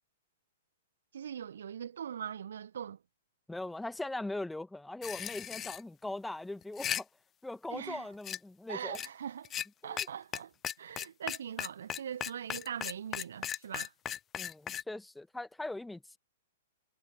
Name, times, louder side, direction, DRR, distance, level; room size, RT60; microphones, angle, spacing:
voice 1, 1.1-3.0 7.7-8.1 8.7-9.5 9.8-10.5 10.8-13.9, right 8 dB, 60° right, 1.5 m, -41 dB
voice 2, 3.5-7.1 7.4-9.0 9.8-10.1 14.4-16.2, left 2 dB, 5° left, 1.9 m, -40 dB
sound 1, 5.0-5.8 6.6-7.0 8.2-8.4 8.9-9.1 9.4-9.7 10.0-10.1 10.3-10.4 10.6-14.8, left 10 dB, 20° left, 0.4 m, -36 dB
figure-of-eight pair, 110°, 0 cm